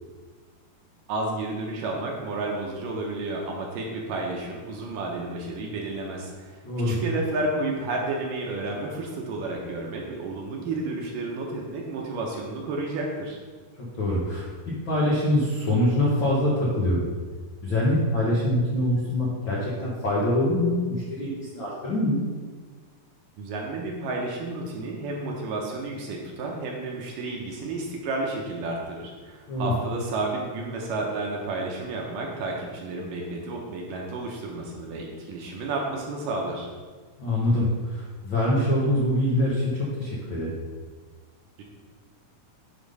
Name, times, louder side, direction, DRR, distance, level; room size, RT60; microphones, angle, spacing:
voice 1, 1.1-6.6 6.9-13.4 23.4-36.7 41.6-41.7, right 2 dB, 70° right, -1 dB, 2.3 m, -31 dB
voice 2, 6.6-7.0 13.8-17.0 17.6-22.2 29.5-29.7 37.2-40.5, left 1 dB, 80° left, -6 dB, 1.0 m, -24 dB
9.2 x 3.8 x 5.4 m, 1.4 s
omnidirectional pair, 4.4 m